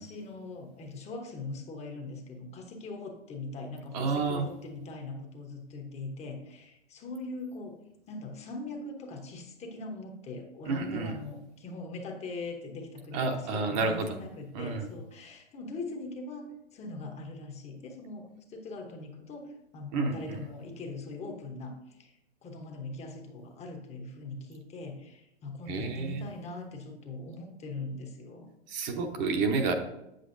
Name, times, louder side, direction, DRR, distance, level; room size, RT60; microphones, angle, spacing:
voice 1, 0.0-7.8 8.1-28.9, left 3 dB, 20° left, 3 dB, 0.9 m, -41 dB
voice 2, 3.9-4.5 10.6-11.2 13.1-14.1 14.5-14.9 19.9-20.4 25.7-26.2 28.7-29.7, right 4 dB, 40° right, 4 dB, 0.9 m, -30 dB
7.9 x 7.7 x 2.6 m, 0.87 s
hypercardioid pair, 125°, 35 cm